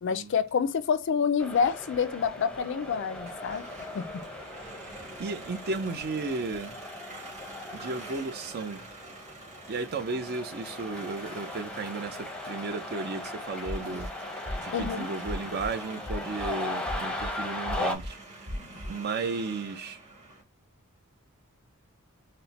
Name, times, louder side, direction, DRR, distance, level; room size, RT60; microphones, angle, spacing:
voice 1, 0.0-3.6 3.9-4.2 14.7-15.1, left 6 dB, 60° left, 0.4 m, -28 dB
sound 1, 1.4-17.9, left 1 dB, 5° left, 0.7 m, -38 dB
sound 2, 2.8-20.4, right 3 dB, 30° right, 1.2 m, -47 dB
voice 2, 5.2-6.8 7.7-8.8 9.7-14.1 14.6-18.2 18.9-20.0, right 3 dB, 50° right, 0.5 m, -34 dB
sound 3, 13.6-14.1 14.5-14.9 15.3-15.7 16.1-16.5 16.9-17.3 17.7-18.1 18.5-18.9, left 1 dB, 65° right, 2.1 m, -37 dB
4.2 x 2.1 x 4.0 m
head